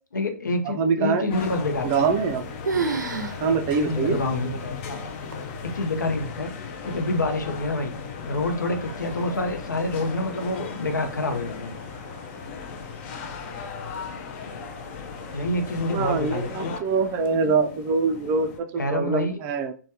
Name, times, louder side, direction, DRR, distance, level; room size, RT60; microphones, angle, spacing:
voice 1, 0.1-1.9 3.8-5.0 5.6-6.5 6.8-7.9 8.2-11.7 15.3-16.7 17.4-17.5 18.7-19.4, left 2 dB, 80° left, 6 dB, 0.6 m, -27 dB
voice 2, 0.6-1.2 1.8-2.4 3.4-4.2 15.9-19.7, right 5 dB, 25° right, 7 dB, 0.3 m, -24 dB
sound 1, 1.3-18.6, left 5 dB, 35° left, 0.4 m, -37 dB
sound 2, 1.9-2.4 2.6-3.4 3.7-3.8 4.5-4.6 5.3-5.7, right 4 dB, 85° right, 0.5 m, -28 dB
Waves surf, 7.5-17.4, left 3 dB, 65° left, 1.0 m, -46 dB
3.2 x 2.2 x 2.7 m, 0.38 s
hypercardioid pair, 130°, 10 cm